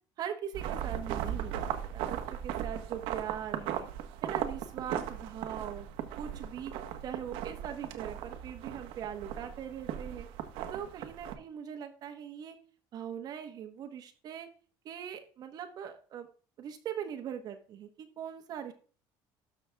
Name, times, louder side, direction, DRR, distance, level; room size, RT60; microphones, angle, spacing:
voice 1, 0.2-3.9 4.2-5.9 6.2-6.7 7.0-10.3 10.7-12.6 12.9-14.5 14.8-16.3 16.6-18.7, right 9 dB, 45° right, 5 dB, 1.3 m, -41 dB
sound 1, 0.5-11.3, right 10 dB, 70° right, 1.4 m, -37 dB
13.0 x 6.0 x 3.5 m, 0.40 s
cardioid pair, 155°, 9 cm